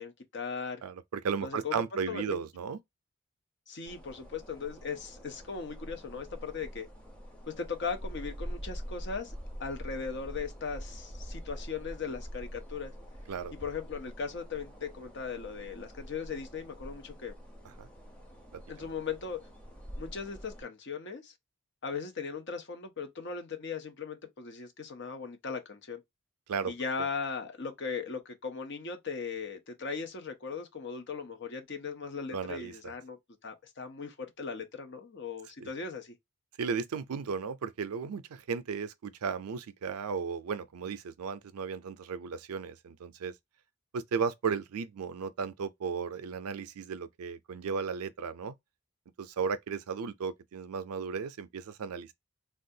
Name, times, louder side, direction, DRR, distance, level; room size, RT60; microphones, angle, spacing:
voice 1, 0.0-0.8 1.4-1.8 2.1-2.4 3.7-6.9 7.5-12.9 13.6-17.3 18.7-19.4 20.0-21.3 21.8-26.0 26.7-36.1, left 5 dB, 50° left, 0.6 m, -38 dB
voice 2, 0.8-2.8 13.3-13.5 17.8-17.9 18.5-18.9 26.5-26.7 32.3-32.9 35.6-35.7 36.6-43.3 43.9-48.5 49.2-52.1, right 6 dB, 80° right, 0.4 m, -35 dB
sound 1, 3.9-20.6, equal, 5° left, 0.7 m, -45 dB
3.3 x 2.3 x 2.7 m
head